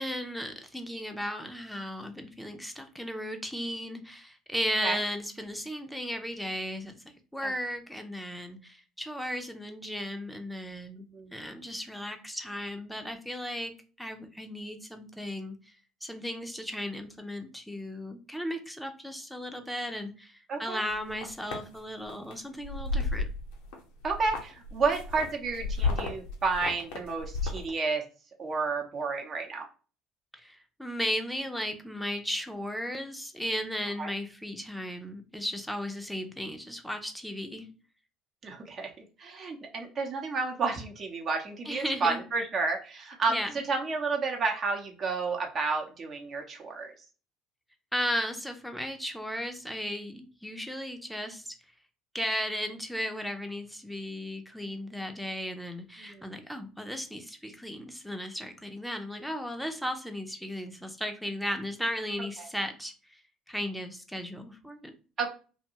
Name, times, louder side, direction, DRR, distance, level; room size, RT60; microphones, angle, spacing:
voice 1, 0.0-7.0 7.3-13.7 14.0-15.6 16.0-23.3 30.3-37.7 41.7-42.2 43.3-43.6 47.9-51.5 52.1-63.2 63.5-64.9, equal, ahead, 5 dB, 0.6 m, -35 dB
voice 2, 20.5-20.8 24.0-28.0 28.4-29.7 34.0-34.1 38.4-46.9 56.0-56.3 62.4-62.5 65.2-65.3, right 4 dB, 45° right, 1 dB, 0.9 m, -31 dB
sound 1, 20.9-21.6 22.1-22.3 22.6-23.8 24.0-27.7, left 3 dB, 80° left, 0.6 m, -32 dB
2.5 x 2.2 x 2.9 m, 0.36 s
hypercardioid pair, 65°, 0 cm